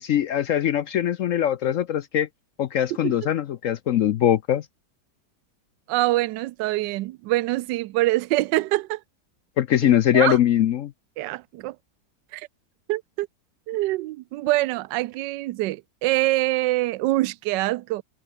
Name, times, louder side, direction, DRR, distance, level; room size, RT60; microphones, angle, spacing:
voice 1, 0.0-2.3 2.6-4.7 9.6-10.9, left 11 dB, 65° left, 0.8 m, -22 dB
voice 2, 5.9-9.0 9.8-10.4 11.2-11.8 12.3-12.5 12.9-13.3 13.7-18.0, right 18 dB, 85° right, 1.2 m, -25 dB
omnidirectional pair, 1.9 m